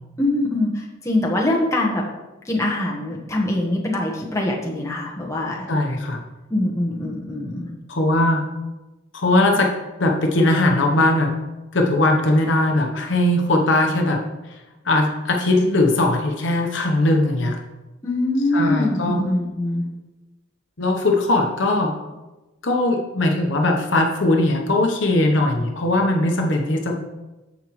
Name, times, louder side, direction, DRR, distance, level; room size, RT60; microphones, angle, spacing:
voice 1, 0.2-2.1 2.4-5.7 6.5-7.7 18.0-19.8, left 1 dB, 15° left, -2 dB, 1.2 m, -23 dB
voice 2, 5.7-6.2 7.9-8.5 9.1-9.7 10.0-11.3 11.7-14.2 14.8-17.6 18.5-19.2 20.8-21.9 22.6-27.0, left 2 dB, 65° left, 2 dB, 0.9 m, -19 dB
14.0 x 4.8 x 3.1 m, 1.1 s
head